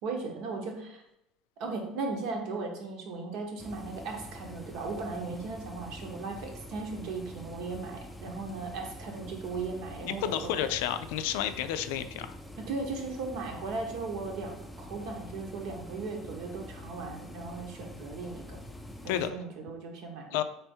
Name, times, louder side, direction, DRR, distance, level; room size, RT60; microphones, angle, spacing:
voice 1, 0.0-1.0 1.6-10.6 12.6-18.6 19.0-20.4, right 3 dB, 65° right, 2 dB, 1.0 m, -37 dB
sound 1, 3.6-19.3, equal, 5° left, 0.4 m, -46 dB
voice 2, 10.0-12.4 19.1-19.3 20.3-20.4, left 11 dB, 85° left, 10 dB, 0.4 m, -31 dB
3.5 x 3.4 x 4.4 m, 0.82 s
cardioid pair, 140°, 0 cm